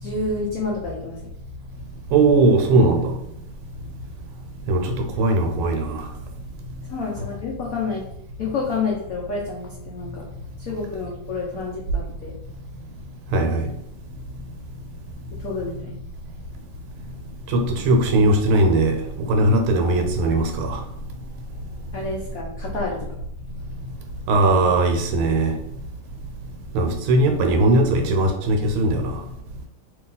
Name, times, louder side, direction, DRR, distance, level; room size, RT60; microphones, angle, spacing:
voice 1, 0.0-1.2 6.9-8.0 8.4-10.2 10.6-12.3 15.4-16.0 21.9-23.0, left 3 dB, 90° left, 0.7 m, -29 dB
voice 2, 2.1-3.1 4.7-6.0 13.3-13.7 17.5-19.0 19.3-20.8 24.3-25.5 26.7-29.2, right 2 dB, 90° right, 1.5 m, -19 dB
2.9 x 2.9 x 3.8 m
omnidirectional pair, 2.3 m